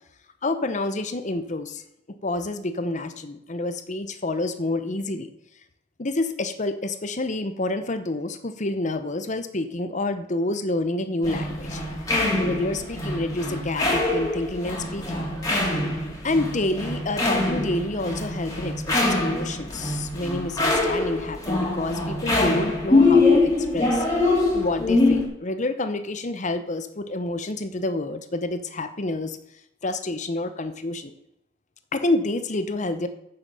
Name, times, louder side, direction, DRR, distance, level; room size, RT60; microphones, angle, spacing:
voice 1, 0.4-1.8 2.1-5.3 6.0-11.8 12.4-15.2 16.2-24.0 24.5-29.4 29.8-31.1 31.9-33.1, left 2 dB, 35° left, 10 dB, 0.9 m, -28 dB
sound 1, 11.2-25.2, left 2 dB, 20° left, 3.0 m, -23 dB
9.2 x 6.9 x 6.9 m, 0.79 s
head